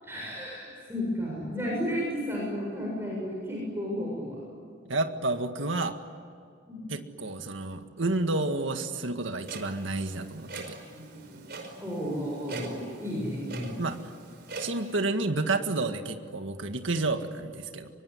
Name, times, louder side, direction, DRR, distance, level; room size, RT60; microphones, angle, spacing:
voice 1, 0.0-4.4 6.7-6.9 11.8-13.7, equal, 15° right, -4 dB, 7.6 m, -33 dB
voice 2, 4.9-6.0 6.9-10.8 13.8-14.0 14.6-17.9, right 2 dB, 90° right, 7 dB, 1.9 m, -30 dB
Clock, 9.4-15.0, right 3 dB, 55° right, 5.3 m, -43 dB
25.0 x 24.0 x 9.9 m, 2.3 s
head